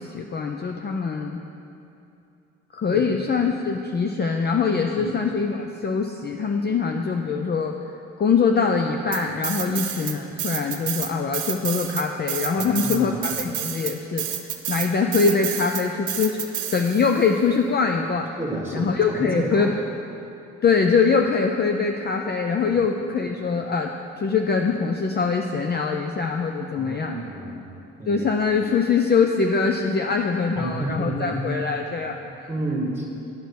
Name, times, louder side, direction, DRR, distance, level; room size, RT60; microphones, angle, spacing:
voice 1, 0.0-1.4 2.7-7.8 8.2-14.3 14.7-16.4 16.7-18.3 18.7-19.7 20.6-27.2 28.1-32.5, left 5 dB, 35° left, 3 dB, 0.5 m, -23 dB
sound 1, 9.1-10.1 10.4-17.2, right 10 dB, 80° right, 0.8 m, -29 dB
voice 2, 12.5-13.2 18.4-19.7 22.7-22.8 26.7-27.6 28.0-28.2 30.6-31.5 32.5-33.0, right 1 dB, 10° right, -2 dB, 2.0 m, -30 dB
10.5 x 5.2 x 5.9 m, 2.7 s
cardioid pair, 90°, 30 cm